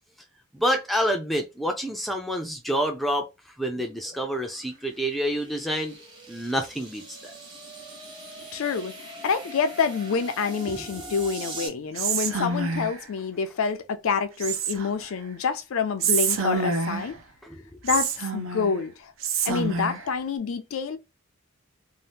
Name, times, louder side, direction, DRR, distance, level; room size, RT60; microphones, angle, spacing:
voice 1, 0.5-3.3 3.6-6.0 6.3-7.3 10.7-10.9 17.4-17.6, equal, ahead, 0.4 m, -28 dB
sound 1, 3.8-11.7, right 2 dB, 20° right, 0.8 m, -42 dB
voice 2, 8.5-17.2 17.8-19.1 19.5-21.0, left 5 dB, 75° left, 0.4 m, -27 dB
Whispering, 11.9-13.0 14.4-15.1 16.0-17.2 17.9-18.8 19.2-20.1, right 5 dB, 65° right, 0.5 m, -27 dB
2.7 x 2.1 x 3.3 m
head